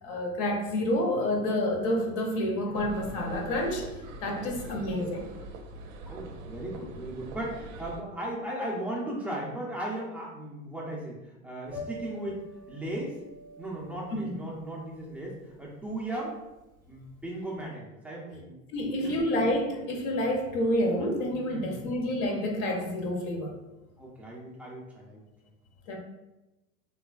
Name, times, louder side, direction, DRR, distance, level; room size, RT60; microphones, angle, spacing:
voice 1, 0.0-3.9 4.2-5.2 18.7-23.5 25.9-26.0, left 1 dB, 45° left, 3 dB, 0.6 m, -28 dB
sound 1, 2.7-8.0, right 3 dB, 60° right, 0.5 m, -43 dB
voice 2, 4.4-4.9 6.1-13.2 13.6-16.4 16.9-19.2 20.1-20.2 21.5-21.9 24.0-25.2, right 1 dB, 5° right, -4 dB, 0.3 m, -37 dB
Piano, 11.7-17.6, left 1 dB, 20° right, 0.7 m, -47 dB
3.2 x 2.3 x 2.3 m, 1.0 s
hypercardioid pair, 100°, 43 cm